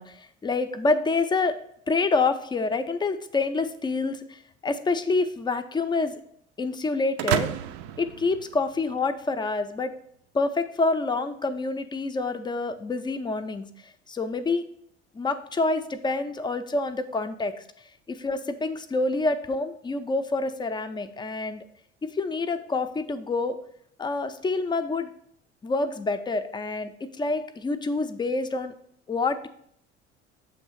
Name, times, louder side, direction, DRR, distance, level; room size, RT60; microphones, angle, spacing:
voice 1, 0.0-1.6 1.9-6.2 6.6-7.5 8.0-9.9 10.3-13.7 14.1-14.7 15.1-17.5 18.1-21.6 22.0-23.6 24.0-25.1 25.6-28.7 29.1-29.5, left 3 dB, 15° left, 9 dB, 0.4 m, -27 dB
sound 1, 7.2-9.1, right 11 dB, 55° right, 0.5 m, -30 dB
7.1 x 3.0 x 5.4 m, 0.68 s
figure-of-eight pair, 60°, 35 cm